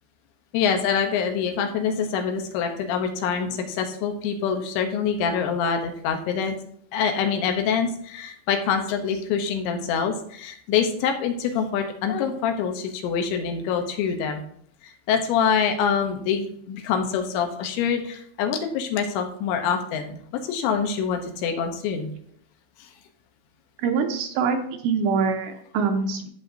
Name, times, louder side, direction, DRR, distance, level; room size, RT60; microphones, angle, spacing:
voice 1, 0.5-6.6 6.9-14.4 14.8-22.1 22.8-22.9, left 6 dB, 80° left, 5 dB, 3.1 m, -25 dB
voice 2, 23.8-24.6 24.8-26.3, right 5 dB, 80° right, 5 dB, 2.9 m, -24 dB
13.5 x 7.5 x 2.7 m, 0.64 s
omnidirectional pair, 5.4 m